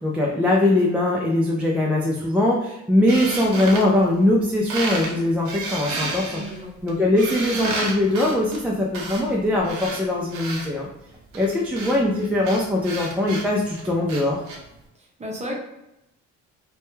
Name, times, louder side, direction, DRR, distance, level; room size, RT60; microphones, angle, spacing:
voice 1, 0.0-6.4 6.8-10.9 11.3-14.4, left 1 dB, 5° right, -4 dB, 0.3 m, -21 dB
sound 1, 3.1-4.4 4.7-5.1 5.4-10.7 11.3-14.6, right 3 dB, 70° right, 0.7 m, -31 dB
voice 2, 6.3-6.7 14.9-15.6, equal, 20° right, -1 dB, 0.7 m, -33 dB
2.2 x 2.1 x 3.0 m, 0.89 s
cardioid pair, 90°, 30 cm